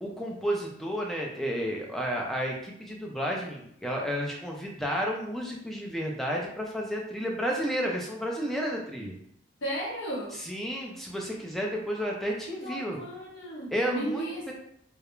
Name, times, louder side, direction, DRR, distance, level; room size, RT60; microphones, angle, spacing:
voice 1, 0.0-9.1 10.3-13.0 13.7-14.5, equal, ahead, -1 dB, 0.3 m, -32 dB
voice 2, 9.6-10.4 12.5-14.5, right 1 dB, 80° left, -4 dB, 0.9 m, -35 dB
2.3 x 2.0 x 3.0 m, 0.72 s
head